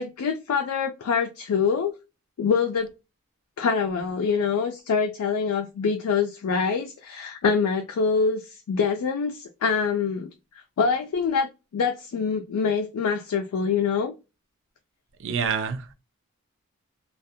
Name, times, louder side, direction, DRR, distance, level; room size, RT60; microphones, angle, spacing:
voice 1, 0.0-1.9 2.4-2.9 3.6-10.3 10.8-14.1, left 5 dB, 90° left, 0.4 m, -25 dB
voice 2, 15.2-15.9, right 6 dB, 55° right, 0.4 m, -27 dB
2.3 x 2.1 x 2.6 m
head